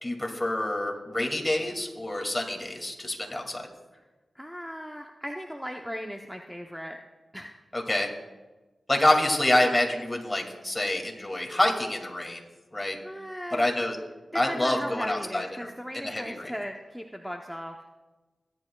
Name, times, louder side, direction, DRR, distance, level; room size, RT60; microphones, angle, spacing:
voice 1, 0.0-3.7 7.7-8.1 8.9-12.4 12.7-13.0 13.5-14.0 14.3-15.7 16.0-16.5, left 1 dB, 20° left, 1 dB, 2.3 m, -27 dB
voice 2, 4.4-7.0 7.3-7.5 13.0-13.6 14.5-17.8, equal, ahead, 3 dB, 0.8 m, -37 dB
17.5 x 10.5 x 2.3 m, 1.2 s
cardioid pair, 45°, 0 cm